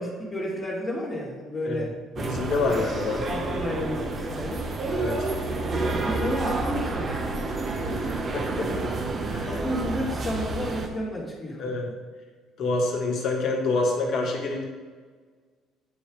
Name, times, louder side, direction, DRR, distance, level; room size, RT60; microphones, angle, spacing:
voice 1, 0.0-1.9 2.5-2.9 3.3-4.7 5.9-7.9 9.5-11.7, left 1 dB, 35° left, -7 dB, 1.9 m, -32 dB
voice 2, 2.2-3.2 4.9-5.3 7.7-8.0 8.3-8.9 9.2-9.5 11.6-11.9 12.6-14.6, left 3 dB, 60° left, 0 dB, 1.5 m, -27 dB
sound 1, 2.2-10.9, right 3 dB, 45° right, 0.9 m, -29 dB
9.1 x 3.2 x 5.0 m, 1.4 s
hypercardioid pair, 60°, 0 cm